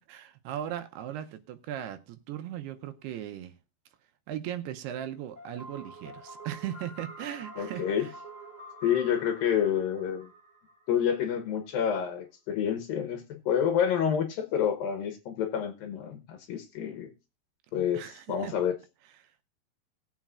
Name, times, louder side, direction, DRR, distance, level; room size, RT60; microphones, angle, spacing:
voice 1, 0.0-3.6 4.3-8.1 17.9-18.5 19.2-19.4, right 11 dB, 80° right, 2.7 m, -38 dB
sound 1, 5.4-11.2, right 2 dB, 25° right, 0.9 m, -47 dB
voice 2, 7.6-8.1 8.8-10.3 10.9-17.1 17.7-18.0 18.3-18.7, left 8 dB, 70° left, 2.4 m, -28 dB
19.5 x 7.3 x 2.4 m
omnidirectional pair, 4.8 m